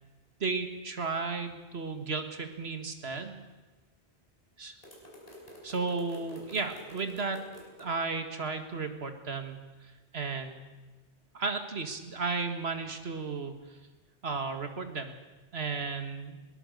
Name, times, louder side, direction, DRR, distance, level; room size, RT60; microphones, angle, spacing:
voice 1, 0.4-3.4 4.6-4.8 5.6-7.4 7.8-9.6 10.1-10.6 11.3-13.5 14.2-15.1 15.5-16.4, right 4 dB, 75° right, 7 dB, 2.1 m, -34 dB
sound 1, 4.8-7.8, equal, 35° left, 4.9 m, -49 dB
22.0 x 18.5 x 6.7 m, 1.2 s
omnidirectional pair, 1.1 m